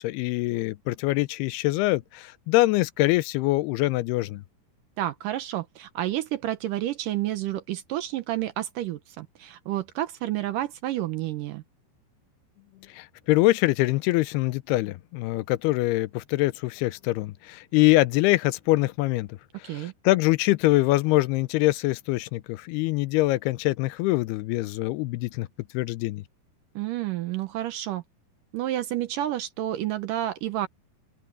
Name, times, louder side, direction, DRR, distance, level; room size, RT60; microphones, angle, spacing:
voice 1, 0.0-4.4 12.9-19.3 19.7-25.5 25.7-26.2, left 19 dB, 85° left, 2.6 m, -24 dB
voice 2, 5.0-11.6 19.6-19.9 26.8-28.0 28.5-30.7, right 13 dB, 70° right, 2.2 m, -30 dB
open air
omnidirectional pair, 4.5 m